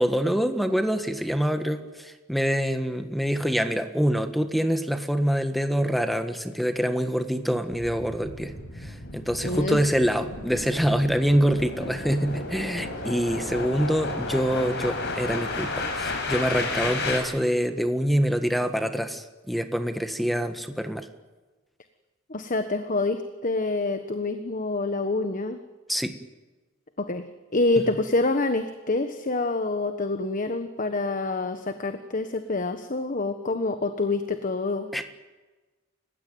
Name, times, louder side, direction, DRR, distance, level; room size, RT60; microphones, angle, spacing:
voice 1, 0.0-8.5 8.8-21.1 25.9-26.2 34.9-35.0, equal, ahead, 8 dB, 1.5 m, -25 dB
sound 1, 7.7-17.2, left 3 dB, 60° left, 5.5 m, -33 dB
voice 2, 9.4-9.8 22.3-25.6 27.0-27.3 27.5-35.0, left 2 dB, 40° left, 8 dB, 1.3 m, -27 dB
29.5 x 16.5 x 9.3 m, 1.2 s
head